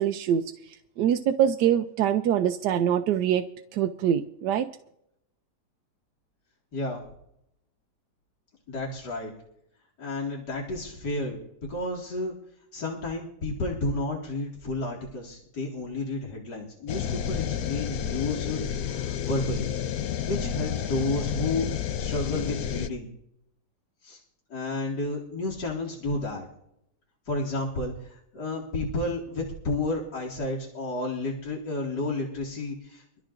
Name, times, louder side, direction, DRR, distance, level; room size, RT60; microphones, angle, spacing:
voice 1, 0.0-3.4 3.7-4.7, right 9 dB, 85° right, 6 dB, 1.2 m, -24 dB
voice 2, 6.7-7.0 8.7-9.3 10.0-12.3 12.7-19.7 20.2-23.1 24.0-24.2 24.5-26.5 27.3-33.0, left 2 dB, 85° left, -3 dB, 2.8 m, -31 dB
sound 1, 16.9-22.9, left 9 dB, 70° left, 1.1 m, -30 dB
24.5 x 13.5 x 2.6 m, 0.77 s
omnidirectional pair, 1.8 m